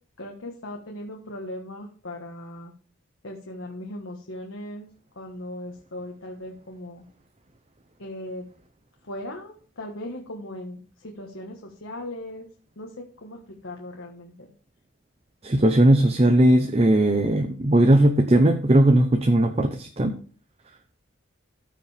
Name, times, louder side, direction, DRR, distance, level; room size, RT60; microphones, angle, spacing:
voice 1, 0.2-2.7 3.2-4.9 5.1-7.0 8.0-8.4 9.0-12.5 12.8-12.9 13.2-14.5, left 1 dB, 75° left, 0 dB, 1.4 m, -38 dB
voice 2, 15.4-20.1, right 1 dB, 30° right, 6 dB, 0.6 m, -18 dB
14.5 x 5.1 x 3.4 m, 0.42 s
head